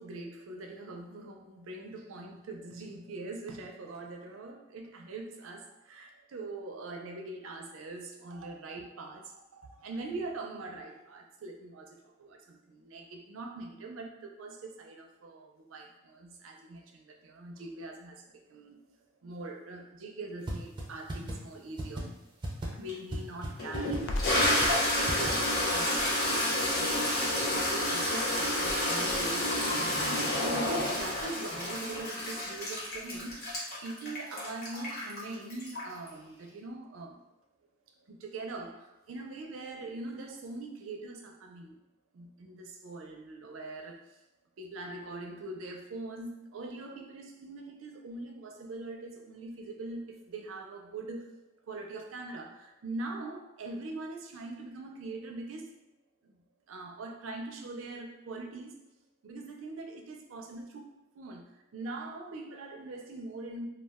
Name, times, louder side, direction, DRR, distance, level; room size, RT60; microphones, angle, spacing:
voice 1, 0.0-18.8 19.2-22.2 22.7-27.1 27.5-29.5 30.0-33.5 33.8-37.2 38.1-41.8 42.1-44.2 44.6-51.4 51.7-55.7 56.2-56.4 56.7-58.8 59.2-61.4 61.7-63.7, right 2 dB, 85° right, 2 dB, 0.5 m, -42 dB
sound 1, 20.5-20.6 20.8-20.9 21.1-21.3 21.8-22.0 22.4-22.7 23.1-23.2 23.4-23.5 23.7-24.0 24.4-24.7 25.1-25.3, right 1 dB, 25° right, 0.5 m, -34 dB
Toilet flush, 22.9-23.0 23.6-36.1, left 1 dB, 50° left, 0.9 m, -30 dB
Crackle, 23.9-32.0 32.3-32.5 32.8-33.5, left 2 dB, 75° left, 0.4 m, -42 dB
2.3 x 2.1 x 3.4 m, 0.96 s
head